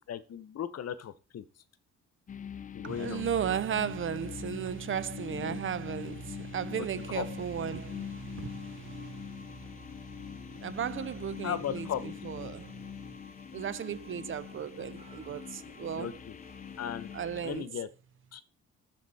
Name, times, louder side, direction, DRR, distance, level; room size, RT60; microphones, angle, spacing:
voice 1, 0.1-1.4 2.7-3.2 5.3-5.6 7.1-7.2 11.4-12.0 15.9-16.4 16.8-17.1 17.4-17.9 18.3-18.4, left 9 dB, 55° left, 1.0 m, -36 dB
sound 1, 2.3-17.6, left 8 dB, 25° left, 0.4 m, -43 dB
voice 2, 2.8-9.4 10.6-12.7 13.5-16.1 17.1-17.7, right 8 dB, 45° right, 0.5 m, -35 dB
sound 2, 6.9-17.7, right 1 dB, 20° right, 1.7 m, -58 dB
12.0 x 4.4 x 4.2 m
cardioid pair, 90°, 30 cm